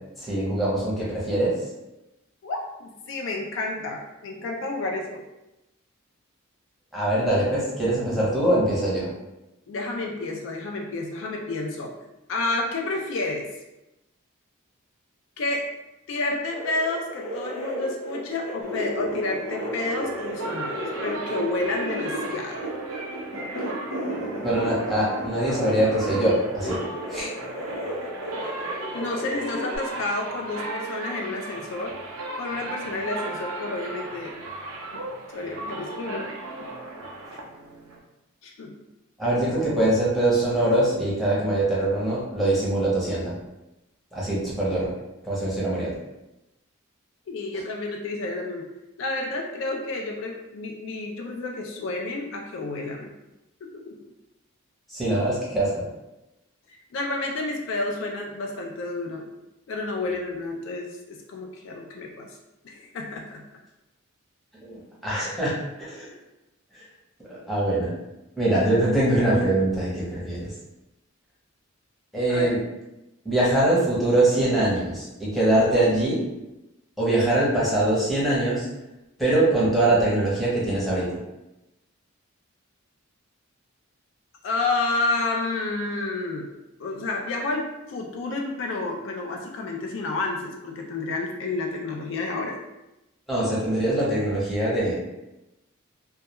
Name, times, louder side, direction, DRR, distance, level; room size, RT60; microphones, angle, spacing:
voice 1, 0.2-1.5 6.9-9.1 24.4-26.8 27.1-27.3 39.2-43.3 44.1-44.9 45.2-45.9 54.9-55.8 64.6-66.1 66.7-66.8 67.3-67.9 68.4-70.5 72.1-72.6 73.2-76.2 77.0-78.7 79.2-81.1 93.3-95.0, right 1 dB, ahead, -8 dB, 0.7 m, -23 dB
voice 2, 2.4-5.2 9.7-11.9 12.3-13.5 15.4-15.6 16.1-22.8 28.9-31.9 32.4-34.3 34.9-35.0 35.3-36.3 36.6-36.7 38.4-38.7 47.3-48.7 49.0-53.1 53.6-54.0 56.7-59.3 59.7-62.4 62.6-63.4 72.3-72.5 84.4-86.5 86.8-92.6, left 2 dB, 60° left, 1 dB, 0.3 m, -30 dB
sound 1, 16.5-29.8, equal, 85° left, 0.8 m, -33 dB
sound 2, 18.6-38.0, right 2 dB, 75° right, 0.5 m, -37 dB
2.2 x 2.2 x 2.9 m, 0.96 s
head